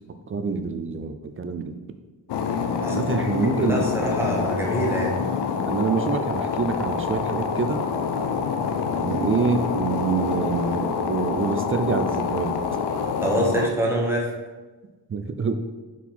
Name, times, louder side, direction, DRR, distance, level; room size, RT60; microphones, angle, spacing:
voice 1, 0.3-1.8 2.9-3.9 5.7-7.8 9.0-12.6 15.1-15.6, right 4 dB, 35° right, 8 dB, 0.4 m, -26 dB
sound 1, 2.3-13.7, left 6 dB, 90° left, 0.6 m, -26 dB
voice 2, 2.8-3.3 3.6-5.2 13.2-14.3, right 1 dB, 5° right, -2 dB, 1.1 m, -25 dB
5.6 x 4.6 x 4.1 m, 1.2 s
wide cardioid pair, 150°, 40 cm